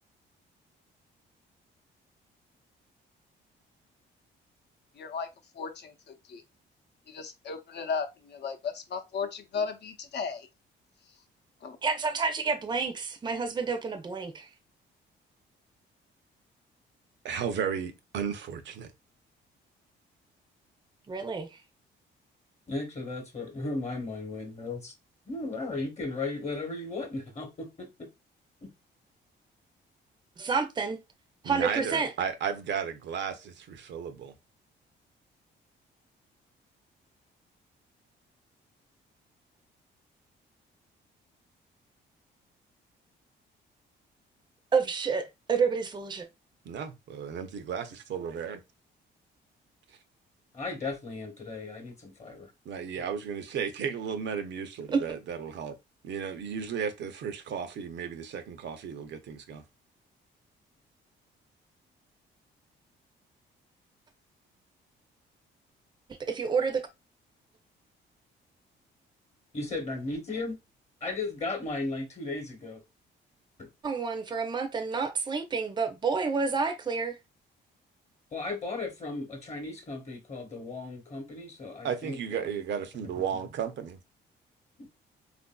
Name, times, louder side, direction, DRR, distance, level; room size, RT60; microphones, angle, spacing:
voice 1, 4.9-5.3 5.5-6.4 7.1-10.5 11.6-11.8, left 5 dB, 60° left, 0.7 m, -35 dB
voice 2, 11.8-14.5 21.1-21.6 30.4-31.0 31.5-32.1 44.7-46.3 54.9-55.0 66.1-66.8 73.8-77.2, right 5 dB, 20° right, 0.5 m, -29 dB
voice 3, 17.2-18.9 31.5-34.3 46.6-48.6 52.7-55.7 56.0-59.6 81.8-84.0, right 7 dB, 65° right, 0.6 m, -34 dB
voice 4, 22.7-24.9 25.3-28.1 28.6-28.7 50.5-52.5 53.0-53.1 69.5-70.6 71.0-72.8 73.6-73.7 78.3-82.6 84.8-84.9, left 3 dB, 35° left, 1.0 m, -36 dB
3.5 x 2.5 x 2.2 m
cardioid pair, 90°, 20 cm